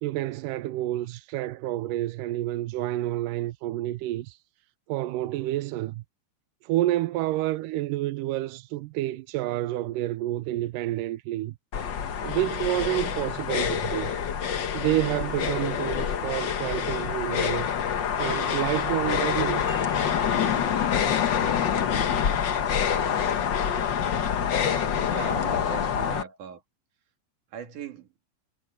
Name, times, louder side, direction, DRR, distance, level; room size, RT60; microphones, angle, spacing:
voice 1, 0.0-4.4 4.9-6.0 6.6-11.5 12.2-14.1 14.7-17.7 18.2-19.6 25.0-25.1, right 15 dB, 85° right, 2.2 m, -29 dB
sound 1, 11.7-26.2, left 8 dB, 60° left, 1.2 m, -26 dB
sound 2, 19.6-20.8, right 2 dB, 15° right, 4.6 m, -48 dB
voice 2, 25.0-26.6 27.5-28.1, right 8 dB, 70° right, 3.5 m, -39 dB
omnidirectional pair, 3.9 m